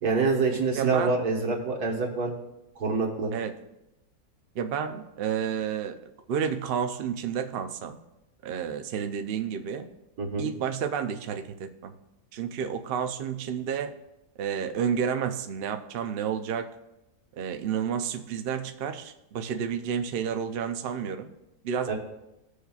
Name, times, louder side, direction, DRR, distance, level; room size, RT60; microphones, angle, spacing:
voice 1, 0.0-2.3 2.8-3.3 10.2-10.5 21.9-22.0, right 4 dB, 90° right, 0 dB, 1.9 m, -26 dB
voice 2, 0.7-1.2 3.3-3.6 4.6-8.0 8.4-9.9 10.4-11.9 12.3-13.9 14.4-16.7 17.4-21.3 21.6-21.9, right 7 dB, 55° right, 8 dB, 0.6 m, -30 dB
16.0 x 6.5 x 2.4 m, 0.92 s
omnidirectional pair, 1.6 m